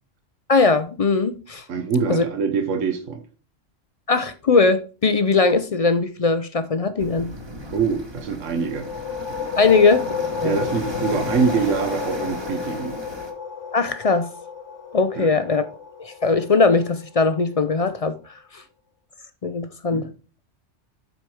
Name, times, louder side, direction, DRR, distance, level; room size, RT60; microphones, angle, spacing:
voice 1, 0.5-1.6 2.1-2.2 4.1-7.3 9.6-10.0 10.4-10.6 13.7-14.3 14.9-15.6 16.0-18.2 18.5-18.6 19.4-20.1, left 4 dB, 50° left, 0.4 m, -19 dB
voice 2, 1.7-3.2 7.7-8.9 10.4-13.0 15.2-15.3 19.9-20.1, right 5 dB, 80° right, 1.3 m, -24 dB
sound 1, 7.0-13.3, equal, 20° right, 1.1 m, -35 dB
sound 2, 8.6-18.0, left 6 dB, 70° left, 1.2 m, -32 dB
8.1 x 4.5 x 4.8 m
omnidirectional pair, 1.3 m